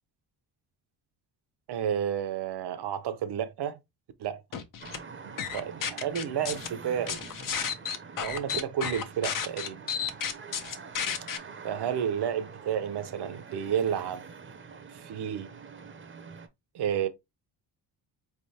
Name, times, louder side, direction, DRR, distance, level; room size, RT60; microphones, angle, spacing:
voice 1, 1.7-3.8 4.2-4.4 5.2-7.2 8.2-9.8 11.6-14.2 14.9-15.5 16.7-17.1, right 9 dB, 65° right, 0.8 m, -31 dB
sound 1, 4.5-5.0 5.4-6.7 7.1-11.4, left 7 dB, 50° left, 0.8 m, -32 dB
sound 2, 4.8-16.5, right 5 dB, 30° right, 0.7 m, -46 dB
4.3 x 3.4 x 2.8 m
cardioid pair, 115°, 42 cm